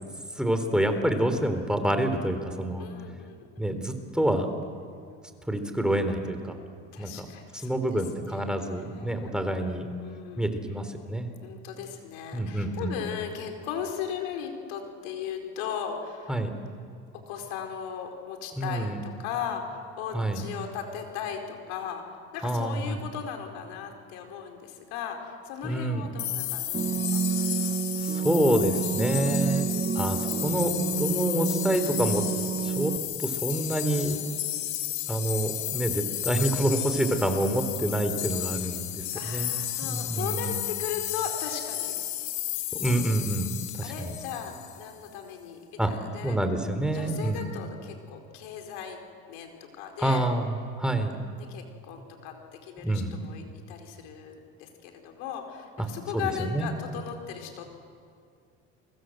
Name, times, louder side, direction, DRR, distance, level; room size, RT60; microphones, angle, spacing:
voice 1, 0.4-2.9 3.6-4.5 5.5-6.5 7.0-7.3 7.6-9.9 10.4-11.3 12.3-13.0 16.3-16.5 18.5-19.0 20.1-20.4 22.4-23.0 25.6-26.1 28.0-29.7 29.9-32.2 32.6-32.9 33.2-34.3 35.1-40.6 42.8-44.2 45.8-45.9 46.2-47.5 50.0-50.5 50.8-51.2 52.8-53.2 56.1-56.7, right 1 dB, ahead, 7 dB, 3.8 m, -27 dB
voice 2, 2.8-3.5 6.9-7.7 8.3-9.3 10.0-10.5 11.4-16.3 17.3-27.2 29.4-29.7 39.1-41.9 42.8-43.0 43.8-46.4 46.9-49.0 49.3-49.5 49.8-50.2 51.3-52.4 52.6-57.8, left 8 dB, 80° left, 4 dB, 4.8 m, -37 dB
sound 1, 26.2-44.9, left 13 dB, 65° left, 2.6 m, -33 dB
sound 2, 26.7-33.0, right 7 dB, 25° right, 1.0 m, -29 dB
30.0 x 24.5 x 7.9 m, 2.2 s
supercardioid pair, 85°, 32 cm